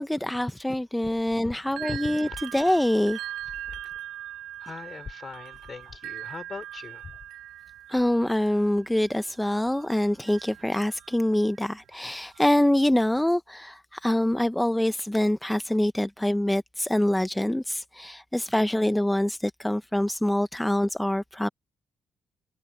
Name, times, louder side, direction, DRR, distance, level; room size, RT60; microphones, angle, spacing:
voice 1, 0.0-3.2 7.9-21.5, left 1 dB, 5° left, 0.6 m, -25 dB
sound 1, 1.6-11.7 12.1-13.3, right 13 dB, 85° right, 3.2 m, -41 dB
voice 2, 4.6-7.1, left 5 dB, 40° left, 3.6 m, -40 dB
cardioid pair, 90°, 0 cm